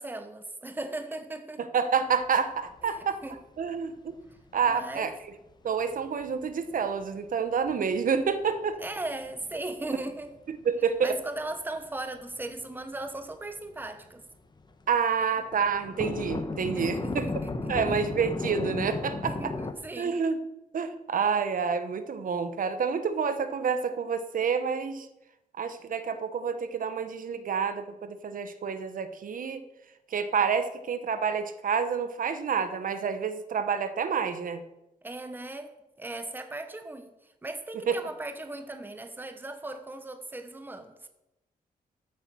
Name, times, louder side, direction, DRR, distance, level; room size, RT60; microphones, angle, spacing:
voice 1, 0.0-1.6 2.8-3.4 4.7-5.1 8.8-10.3 11.0-14.2 16.8-17.7 19.2-20.2 35.0-35.7 36.0-37.1 37.4-41.1, right 2 dB, 15° right, 1.1 m, -38 dB
voice 2, 1.6-3.2 3.6-3.9 4.5-5.1 5.6-8.8 9.9-10.0 10.5-11.2 14.9-17.3 17.7-19.5 20.0-20.4 20.7-25.1 25.6-29.6 30.1-34.6 37.9-38.0, right 6 dB, 60° right, 1.1 m, -28 dB
sound 1, 2.6-2.9 3.1-3.2 3.6-3.7 4.3-4.6 5.0-5.1 5.7-6.5 7.0-7.1 7.7-9.6 10.0-10.4 10.9-11.0 11.6-11.7 11.8-13.4 13.7-13.9 14.2-14.3 14.6-14.7 14.9-15.0 15.4-19.7, left 3 dB, 30° left, 1.2 m, -34 dB
13.5 x 8.5 x 6.2 m
wide cardioid pair, 145°, 15 cm